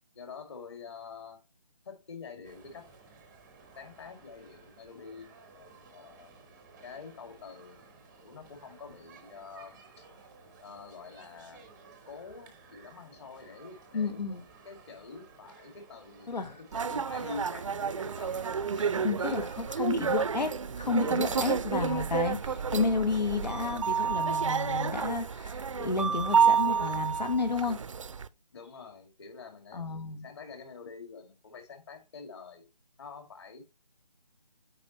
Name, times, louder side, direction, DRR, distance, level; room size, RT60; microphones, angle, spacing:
voice 1, 0.1-1.4 1.9-3.2 3.8-6.3 6.8-10.1 10.6-11.6 12.1-14.4 14.6-20.0 21.3-21.6 28.5-32.6 33.0-33.6, left 5 dB, 40° left, 2.1 m, -47 dB
sound 1, 2.4-22.1, right 4 dB, 5° right, 0.6 m, -55 dB
voice 2, 13.9-14.4 16.3-16.6 19.0-27.8 29.7-30.3, left 4 dB, 85° left, 1.3 m, -31 dB
sound 2, 16.7-28.3, right 6 dB, 50° right, 0.5 m, -30 dB
8.3 x 5.1 x 2.9 m
figure-of-eight pair, 160°, 21 cm